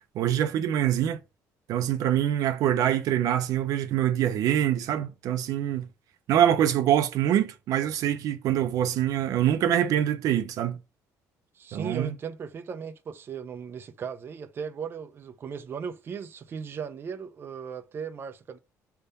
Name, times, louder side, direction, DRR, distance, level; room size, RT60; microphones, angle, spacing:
voice 1, 0.1-1.2 1.7-5.8 6.3-10.8 11.7-12.1, right 11 dB, 70° right, 0.7 m, -24 dB
voice 2, 11.5-18.6, right 6 dB, 35° right, 0.7 m, -37 dB
5.6 x 3.6 x 5.4 m
cardioid pair, 125°, 6 cm